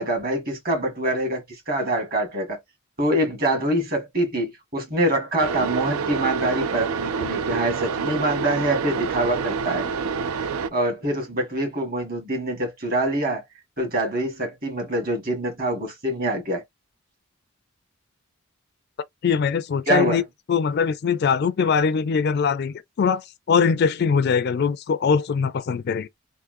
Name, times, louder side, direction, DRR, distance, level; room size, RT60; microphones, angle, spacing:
voice 1, 0.0-2.6 3.0-9.9 10.7-13.4 13.8-16.6 19.9-20.2, right 1 dB, 45° right, 1.8 m, -25 dB
sound 1, 5.4-10.7, right 5 dB, 90° right, 0.5 m, -27 dB
voice 2, 19.2-20.2 20.5-26.1, left 6 dB, 50° left, 0.3 m, -22 dB
3.6 x 2.5 x 2.5 m
head